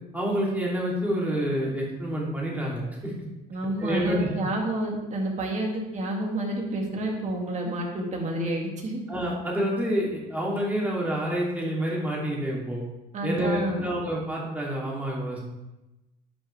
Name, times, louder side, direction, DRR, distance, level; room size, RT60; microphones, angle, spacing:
voice 1, 0.1-3.1 3.8-4.3 9.1-12.8 13.2-15.4, equal, 10° right, -4 dB, 2.7 m, -28 dB
voice 2, 3.5-9.0 13.1-13.9, right 1 dB, 45° right, 0 dB, 2.2 m, -29 dB
11.5 x 6.0 x 3.3 m, 1.0 s
cardioid pair, 110°, 17 cm